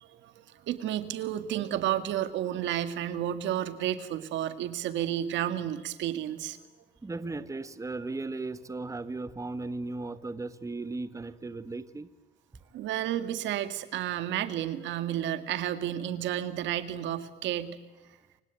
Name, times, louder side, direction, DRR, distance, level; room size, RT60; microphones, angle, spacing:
voice 1, 0.0-6.6 12.7-17.8, right 11 dB, 80° right, 10 dB, 2.1 m, -31 dB
voice 2, 7.0-12.1, right 3 dB, 15° right, 12 dB, 1.5 m, -36 dB
28.5 x 17.0 x 9.1 m, 1.2 s
cardioid pair, 100°, 19 cm